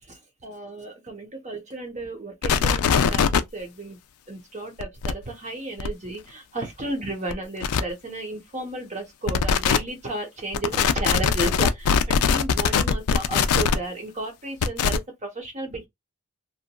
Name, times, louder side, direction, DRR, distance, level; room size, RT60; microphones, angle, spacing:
voice 1, 0.1-4.0 4.3-15.9, right 2 dB, 35° right, 0.9 m, -33 dB
sound 1, 2.4-3.4 4.8-5.1 5.8-5.9 7.3-7.4 7.6-7.8 9.3-9.8 10.5-13.8 14.6-15.0, left 7 dB, 90° left, 0.4 m, -21 dB
2.9 x 2.4 x 2.2 m
head